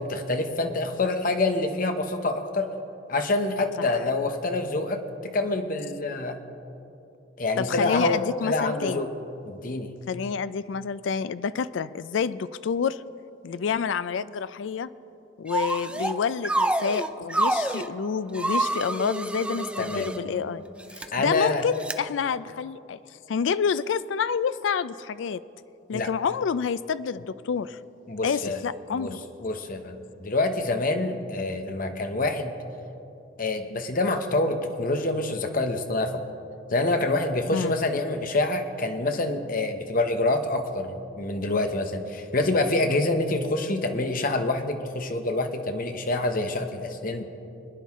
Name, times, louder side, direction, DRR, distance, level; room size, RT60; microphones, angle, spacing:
voice 1, 0.0-2.7 3.1-6.4 7.4-9.1 9.4-9.9 19.8-20.1 21.1-21.6 25.9-26.1 27.2-27.3 28.1-32.5 33.4-36.2 36.7-47.2, left 2 dB, 45° left, 6 dB, 0.9 m, -26 dB
voice 2, 7.6-9.0 10.1-13.0 13.4-14.9 15.4-20.6 20.9-23.0 23.3-25.4 25.9-27.8 28.2-29.2 37.5-37.8, left 6 dB, 75° left, 16 dB, 0.4 m, -28 dB
sound 1, 15.5-16.1 16.4-17.9 18.3-20.2 20.8-21.0 21.8-21.9, right 2 dB, 5° right, 0.4 m, -27 dB
sound 2, 17.1-22.2, equal, 35° right, 1.5 m, -45 dB
23.0 x 10.0 x 3.6 m, 2.9 s
head